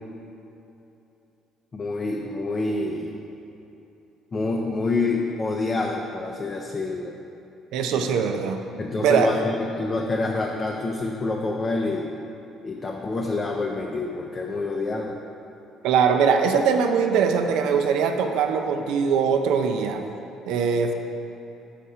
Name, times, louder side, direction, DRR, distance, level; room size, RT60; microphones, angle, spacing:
voice 1, 1.7-3.2 4.3-7.1 7.9-8.1 8.8-12.1 12.6-15.2, left 3 dB, 35° left, 0 dB, 0.5 m, -27 dB
voice 2, 7.7-8.6 9.0-9.3 15.8-20.0 20.5-20.9, right 6 dB, 80° right, 5 dB, 0.4 m, -21 dB
5.0 x 4.2 x 5.5 m, 2.9 s
supercardioid pair, 80°, 0 cm